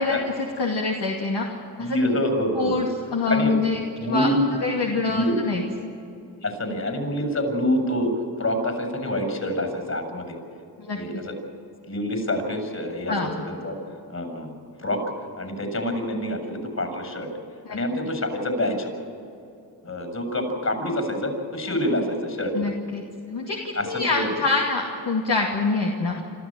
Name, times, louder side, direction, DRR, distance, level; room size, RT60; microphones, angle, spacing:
voice 1, 0.0-1.5 1.8-2.0 2.5-3.8 4.1-4.3 4.6-5.6 10.8-11.0 13.1-13.5 17.7-17.8 22.5-23.0 23.3-26.1, left 3 dB, 70° left, -1 dB, 2.5 m, -25 dB
voice 2, 1.8-2.8 3.3-4.6 5.1-5.3 6.4-8.1 8.4-10.4 10.9-11.4 11.9-13.7 14.1-15.0 15.4-17.3 17.7-19.0 19.8-22.7 23.8-24.3, left 1 dB, 40° left, 4 dB, 7.2 m, -26 dB
26.5 x 14.0 x 9.0 m, 2.6 s
cardioid pair, 50°, 42 cm